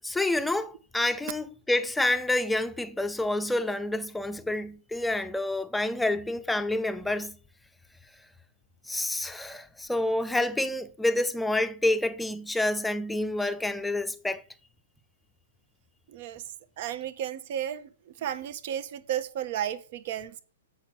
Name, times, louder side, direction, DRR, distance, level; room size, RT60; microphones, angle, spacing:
voice 1, 0.0-7.3 8.9-14.4, left 2 dB, 5° left, 0.7 m, -28 dB
voice 2, 16.1-16.4 16.8-20.4, right 10 dB, 50° right, 1.1 m, -33 dB
8.2 x 5.7 x 6.1 m
hypercardioid pair, 120°, 0 cm